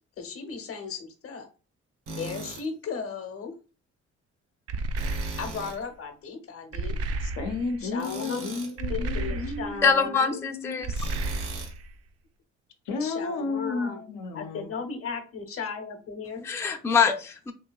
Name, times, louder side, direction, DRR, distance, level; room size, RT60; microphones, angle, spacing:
voice 1, 0.2-1.5 2.2-3.6 5.3-7.0 7.8-8.5 8.9-10.4 13.0-14.0 14.3-16.5, left 5 dB, 50° left, 0.8 m, -36 dB
Tools, 2.1-2.6 5.0-5.8 8.0-8.7 10.9-11.8, right 3 dB, 90° right, 1.1 m, -39 dB
sound 1, 4.7-5.8 6.7-7.8 8.8-9.9 10.8-11.9, right 2 dB, 55° right, 0.4 m, -32 dB
voice 2, 7.2-10.8 12.9-14.7, left 3 dB, 90° left, 0.7 m, -33 dB
voice 3, 9.8-10.9 16.4-17.5, left 6 dB, 10° left, 0.3 m, -24 dB
3.1 x 2.8 x 2.3 m
cardioid pair, 90°, 30 cm